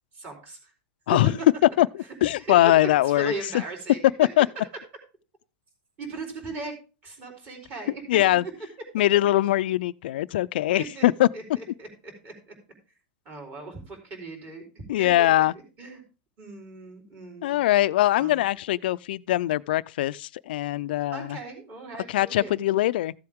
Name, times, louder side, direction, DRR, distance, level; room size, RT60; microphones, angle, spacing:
voice 1, 0.1-0.7 1.1-1.2 2.4-2.5 3.0-4.0 6.0-6.7 7.0-8.0 10.8-11.0 11.3-12.5 13.3-15.4 15.8-16.0 16.4-17.6 18.2-18.5 21.1-22.6, right 3 dB, 30° right, 4.1 m, -38 dB
voice 2, 2.2-3.3 4.2-4.5 8.1-8.4 8.9-11.3 14.9-15.5 17.4-21.4 22.1-23.1, left 14 dB, 75° left, 0.4 m, -22 dB
14.0 x 7.7 x 3.6 m
supercardioid pair, 170°, 5 cm